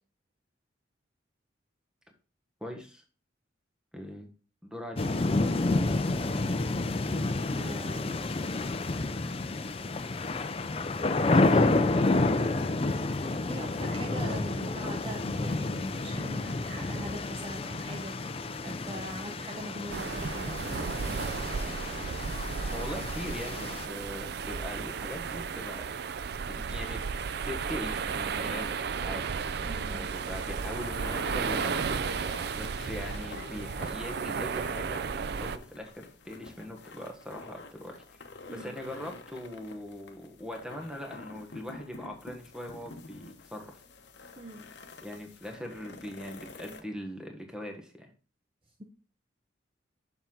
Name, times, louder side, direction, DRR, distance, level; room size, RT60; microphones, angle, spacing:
voice 1, 2.6-3.0 3.9-4.3 4.6-5.1 22.7-25.9 26.4-27.0 27.4-31.9 32.5-38.0 38.5-43.7 45.0-48.1, left 1 dB, 5° right, 3 dB, 1.2 m, -41 dB
sound 1, 5.0-23.9, left 2 dB, 30° left, 0.5 m, -30 dB
voice 2, 6.3-7.0 7.5-8.2 11.3-11.8 13.5-18.1 18.6-20.9 29.6-30.1 38.5-38.8 44.4-44.7, right 1 dB, 30° right, 3 dB, 0.8 m, -42 dB
sound 2, 19.9-35.6, right 5 dB, 55° right, 0.4 m, -34 dB
sound 3, 29.9-46.8, left 3 dB, 60° left, 0.9 m, -47 dB
7.2 x 5.8 x 3.8 m, 0.38 s
head